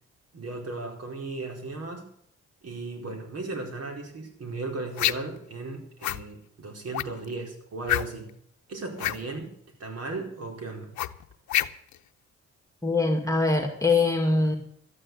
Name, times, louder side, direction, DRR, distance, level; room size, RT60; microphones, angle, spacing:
voice 1, 0.3-2.1 2.6-8.3 8.7-9.5 9.8-10.9, right 3 dB, 55° right, 2 dB, 4.7 m, -36 dB
sound 1, 5.0-5.4 6.0-6.2 6.9-7.3 7.9-8.3 8.9-9.2 11.0-12.0, left 13 dB, 70° left, 0.8 m, -27 dB
voice 2, 12.8-14.6, left 3 dB, 10° left, 2 dB, 2.2 m, -23 dB
13.0 x 9.9 x 7.9 m, 0.67 s
cardioid pair, 90°, 30 cm